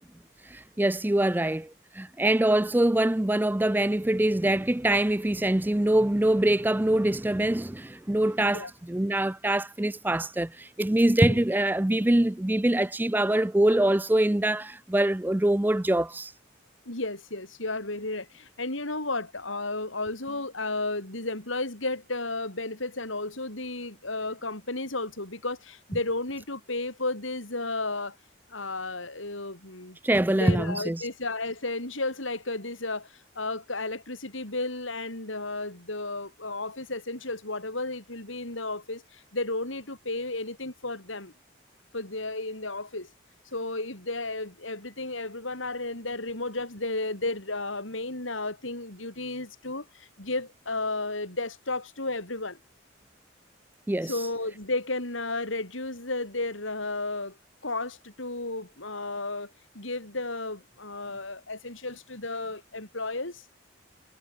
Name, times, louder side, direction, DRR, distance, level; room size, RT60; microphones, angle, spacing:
voice 1, 0.5-16.3 30.0-31.0 53.9-54.1, right 1 dB, 10° right, 0.4 m, -24 dB
voice 2, 16.9-28.2 28.5-30.0 30.3-41.3 41.9-43.1 43.5-52.6 54.0-57.4 57.6-63.4, left 2 dB, 80° left, 6.1 m, -33 dB
head